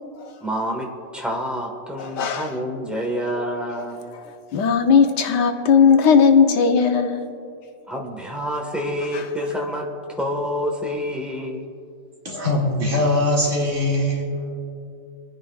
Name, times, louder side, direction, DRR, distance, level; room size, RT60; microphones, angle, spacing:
voice 1, 0.4-4.1 7.9-11.7, equal, ahead, 0 dB, 1.1 m, -28 dB
voice 2, 2.0-2.6 4.1-7.2 9.1-9.3, left 6 dB, 85° left, 6 dB, 1.4 m, -18 dB
voice 3, 12.2-14.7, left 1 dB, 40° right, -4 dB, 2.4 m, -22 dB
27.5 x 9.6 x 2.4 m, 2.4 s
omnidirectional pair, 1.8 m